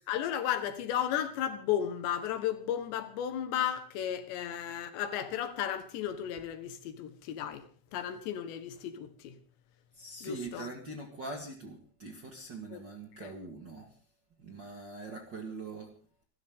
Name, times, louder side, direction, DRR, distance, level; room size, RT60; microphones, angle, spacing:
voice 1, 0.1-7.7 7.9-9.4 10.2-10.7 12.7-12.8 13.2-13.3, left 10 dB, 90° left, 3.7 m, -34 dB
voice 2, 9.9-14.0 14.4-15.9, right 3 dB, 40° right, 1.6 m, -43 dB
29.0 x 13.0 x 3.8 m
omnidirectional pair, 4.9 m